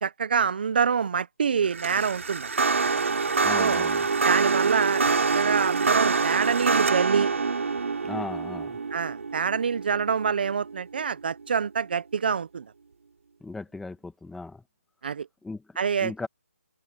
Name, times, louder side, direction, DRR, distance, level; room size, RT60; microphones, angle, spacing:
voice 1, 0.0-2.5 3.6-3.9 4.2-5.0 5.3-7.3 8.9-12.6 15.0-15.3 15.8-16.1, right 6 dB, 40° right, 0.8 m, -26 dB
sound 1, 1.7-11.0, right 4 dB, 60° right, 3.6 m, -25 dB
voice 2, 3.4-4.1 8.0-8.8 13.4-14.6 15.4-16.3, left 3 dB, ahead, 1.3 m, -37 dB
hypercardioid pair, 170°, 8 cm